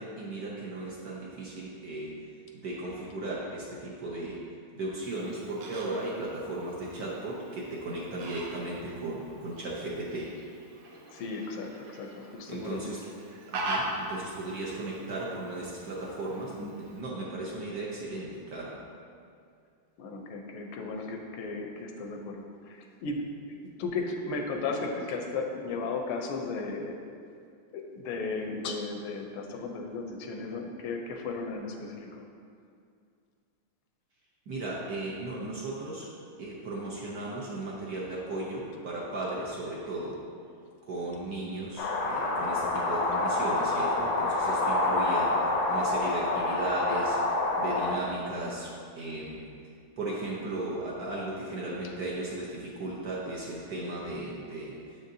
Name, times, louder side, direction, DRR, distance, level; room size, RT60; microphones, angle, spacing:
voice 1, 0.0-2.1 2.6-4.4 4.7-10.3 12.5-13.0 13.5-18.8 34.5-36.1 36.4-40.2 40.8-49.4 50.0-54.8, right 2 dB, 65° right, -5 dB, 1.0 m, -36 dB
Fowl, 5.0-17.0, right 1 dB, 85° right, 1.6 m, -42 dB
voice 2, 11.1-12.8 20.0-23.2 23.6-27.0 27.7-32.2, left 3 dB, 90° left, 2 dB, 1.5 m, -35 dB
sound 1, 41.8-48.0, left 2 dB, 75° left, 0.8 m, -27 dB
7.6 x 5.2 x 2.7 m, 2.3 s
omnidirectional pair, 2.3 m